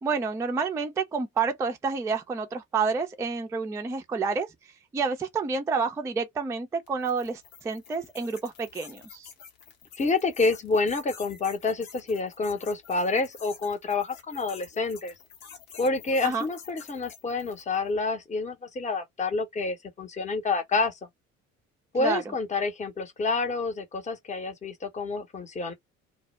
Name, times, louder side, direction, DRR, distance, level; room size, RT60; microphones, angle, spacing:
voice 1, 0.0-4.5 4.9-9.3 16.2-16.5 22.0-22.3, right 5 dB, 10° right, 0.3 m, -29 dB
sound 1, 6.9-17.8, left 7 dB, 70° left, 0.9 m, -49 dB
voice 2, 10.0-15.1 15.8-21.0 21.9-25.7, left 3 dB, 20° left, 0.7 m, -28 dB
2.1 x 2.0 x 3.1 m
figure-of-eight pair, 55°, 39 cm